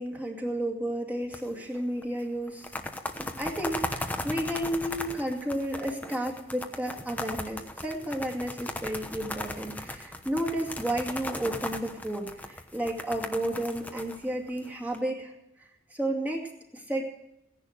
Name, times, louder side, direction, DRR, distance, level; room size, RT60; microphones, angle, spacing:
voice 1, 0.0-2.7 3.4-15.3 15.9-17.0, right 1 dB, 10° right, -1 dB, 2.3 m, -32 dB
sound 1, 1.3-2.0 2.5-15.0, left 1 dB, 10° left, 1.0 m, -37 dB
17.0 x 11.0 x 6.5 m, 0.84 s
head